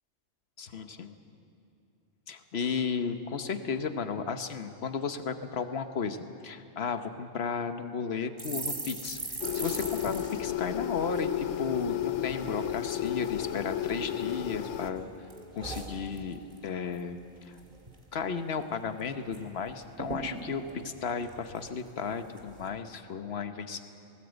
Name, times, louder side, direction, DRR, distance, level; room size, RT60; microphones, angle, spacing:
voice 1, 0.6-1.1 2.3-9.2 9.5-15.1 15.5-17.6 18.1-23.8, left 5 dB, 65° left, 9 dB, 1.2 m, -34 dB
sound 1, 8.4-11.9 12.2-12.4 12.7-13.3 13.9-14.7 15.0-16.6 16.9-17.2 17.4-18.0 18.4-18.5 18.7-19.4 19.7-19.8 20.0-21.9 22.4-22.7, right 2 dB, 40° right, 2.1 m, -41 dB
sound 2, 9.4-14.9, left 11 dB, 90° left, 0.9 m, -33 dB
19.0 x 18.5 x 8.0 m, 2.7 s
omnidirectional pair, 1.2 m